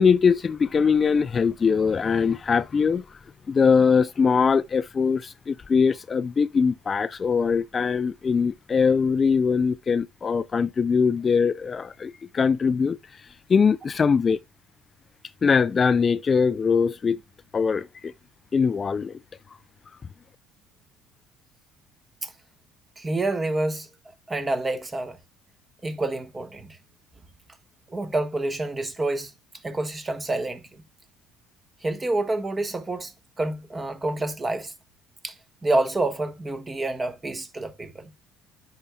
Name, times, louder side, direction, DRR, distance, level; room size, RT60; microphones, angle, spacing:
voice 1, 0.0-3.2 3.5-13.0 13.5-14.4 15.4-17.2 17.5-18.1 18.5-19.2, left 5 dB, 35° left, 0.3 m, -22 dB
voice 2, 23.0-23.9 24.3-25.2 25.8-26.8 27.9-29.3 29.6-30.8 31.8-33.1 33.4-34.7 35.2-35.4 35.6-38.1, right 2 dB, 25° right, 1.3 m, -28 dB
9.9 x 5.6 x 2.3 m
supercardioid pair, 80°, 0 cm